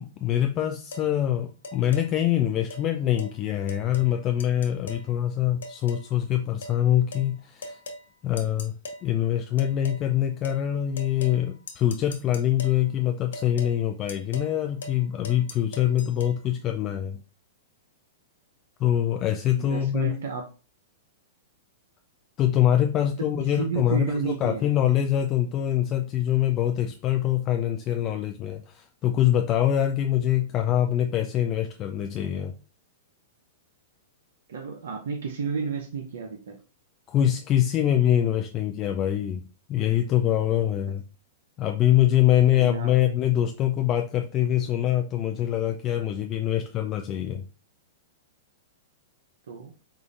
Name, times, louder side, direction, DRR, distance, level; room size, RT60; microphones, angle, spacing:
voice 1, 0.0-7.8 8.2-8.7 9.0-17.2 18.8-20.1 22.4-32.5 37.1-39.4 39.7-41.0 41.6-47.4, left 11 dB, 35° left, 5 dB, 0.4 m, -24 dB
sound 1, 0.9-1.1 1.6-2.1 2.7-2.8 3.2-3.3 3.7-4.1 4.4-5.1 5.6-6.1 6.6-6.8 7.1-7.3 7.6-8.0 8.4-9.0 9.6-10.0 10.4-10.6 11.0-11.4 11.7-12.8 13.3-13.7 14.1-14.5 14.8-15.0 15.2-16.3, left 2 dB, 80° left, 0.7 m, -40 dB
voice 2, 19.6-20.5 23.4-24.6 34.5-36.6 42.5-42.9 49.5-49.7, right 5 dB, 75° right, 2 dB, 0.6 m, -31 dB
4.8 x 2.5 x 2.5 m, 0.34 s
hypercardioid pair, 120°, 0 cm